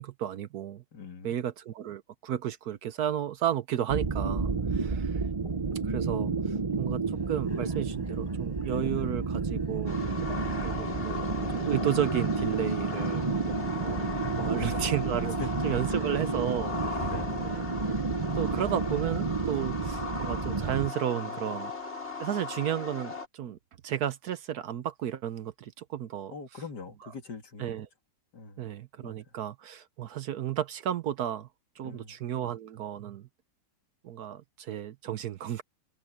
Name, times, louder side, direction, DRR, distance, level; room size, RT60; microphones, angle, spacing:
voice 1, 0.0-0.8 1.2-5.2 5.8-10.0 10.6-13.2 13.8-15.3 15.6-17.1 17.4-17.6 18.4-21.7 22.2-23.6 23.8-26.3 27.6-27.9 28.6-31.5 31.8-33.3 34.0-35.6, right 10 dB, 65° right, 1.2 m, -33 dB
voice 2, 0.9-1.3 13.5-14.9 15.2-15.5 17.0-17.7 21.1-21.6 26.3-27.8 28.3-28.6 29.0-29.4 31.8-32.5, left 4 dB, 65° left, 2.9 m, -44 dB
sound 1, 3.9-20.9, right 4 dB, 30° right, 0.6 m, -31 dB
sound 2, 7.1-12.7, equal, 5° left, 7.0 m, -51 dB
sound 3, 9.9-23.3, left 4 dB, 35° left, 4.9 m, -38 dB
open air
omnidirectional pair, 1.9 m